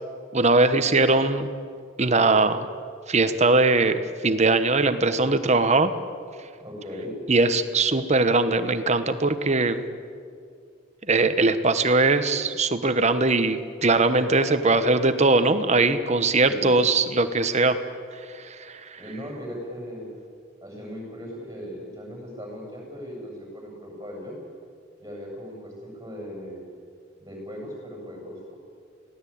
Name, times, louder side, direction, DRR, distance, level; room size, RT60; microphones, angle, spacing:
voice 1, 0.3-1.5 2.0-2.7 3.1-5.9 7.3-9.8 11.1-17.8 18.7-18.8, right 3 dB, 35° right, 10 dB, 1.1 m, -21 dB
voice 2, 6.6-7.1 16.4-16.8 18.9-20.1 20.6-24.4 25.0-26.6 27.2-28.6, equal, 15° right, 0 dB, 7.6 m, -38 dB
25.0 x 17.5 x 8.7 m, 2.2 s
head